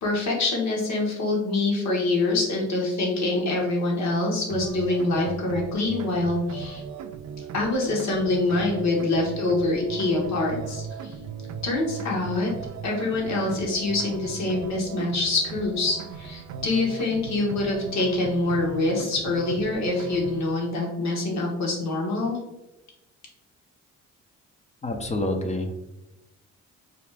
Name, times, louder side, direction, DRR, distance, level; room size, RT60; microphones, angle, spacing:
voice 1, 0.0-6.8 7.5-11.1 11.6-12.5 12.8-22.4, left 2 dB, 65° left, -1 dB, 1.3 m, -25 dB
sound 1, 4.5-20.5, right 6 dB, 60° right, 0.4 m, -38 dB
voice 2, 24.8-25.7, left 1 dB, 25° left, 4 dB, 0.5 m, -27 dB
4.0 x 2.4 x 3.3 m, 0.93 s
cardioid pair, 90°, 30 cm